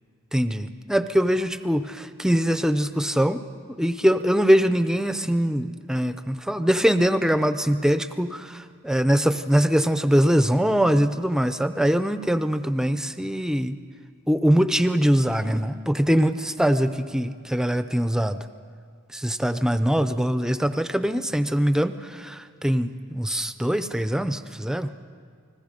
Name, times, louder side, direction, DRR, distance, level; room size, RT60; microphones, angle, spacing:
voice 1, 0.3-3.4 3.8-13.8 14.3-18.4 19.1-24.9, equal, 5° right, 10 dB, 0.5 m, -22 dB
30.0 x 20.5 x 5.2 m, 2.2 s
head